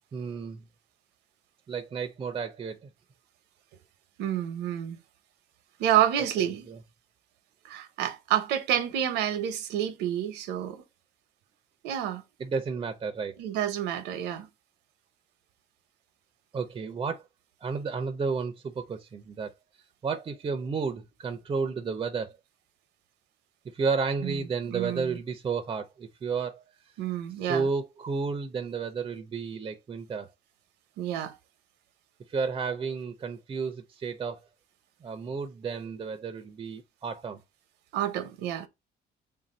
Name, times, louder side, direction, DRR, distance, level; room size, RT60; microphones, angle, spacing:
voice 1, 0.1-0.6 1.7-2.9 6.7-6.8 12.4-13.3 16.5-17.2 17.6-19.5 20.0-22.3 23.7-26.6 27.5-30.3 32.3-34.4 35.0-37.4, right 5 dB, 30° right, 0.5 m, -32 dB
voice 2, 4.2-5.0 5.8-6.7 7.6-10.8 11.8-12.2 13.4-14.5 24.2-24.4 24.7-25.2 27.0-27.7 31.0-31.3 37.9-38.7, right 10 dB, 90° right, 0.7 m, -29 dB
3.5 x 2.6 x 4.1 m
cardioid pair, 110°, 17 cm